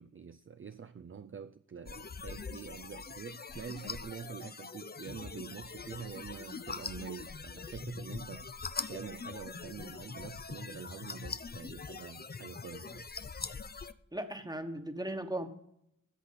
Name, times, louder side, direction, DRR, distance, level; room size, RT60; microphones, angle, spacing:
voice 1, 0.0-13.1, right 7 dB, 40° right, 0.5 m, -46 dB
sound 1, 1.9-13.9, left 4 dB, 30° left, 0.5 m, -43 dB
voice 2, 14.1-15.5, right 1 dB, 10° right, 1.3 m, -37 dB
14.0 x 7.8 x 4.1 m
wide cardioid pair, 70°, 32 cm